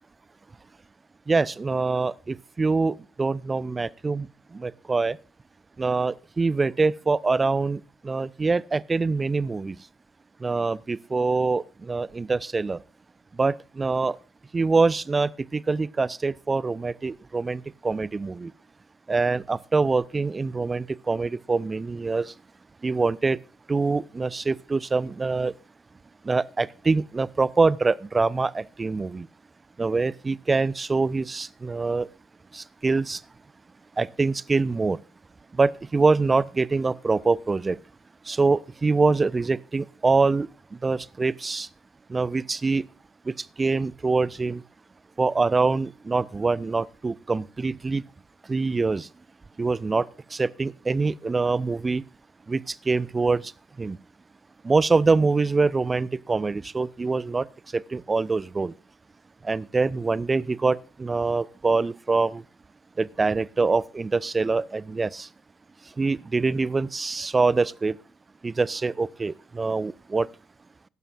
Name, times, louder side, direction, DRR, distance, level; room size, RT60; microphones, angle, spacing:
voice 1, 1.3-4.3 4.5-5.2 5.8-9.7 10.4-12.8 13.4-14.1 14.5-18.5 19.1-22.3 22.8-23.4 23.7-25.5 26.3-29.3 29.8-32.1 32.5-33.2 34.0-35.0 35.6-37.8 38.3-40.5 40.8-41.7 42.1-42.8 43.3-43.4 43.6-44.6 45.2-48.0 48.5-49.1 49.6-50.0 50.3-52.0 52.5-52.6 52.9-53.4 53.8-54.0 54.6-57.4 57.7-58.7 59.5-62.4 63.0-65.3 66.0-67.9 68.4-70.3, right 3 dB, 25° right, 0.5 m, -24 dB
16.5 x 12.0 x 2.5 m
figure-of-eight pair, 50°, 0 cm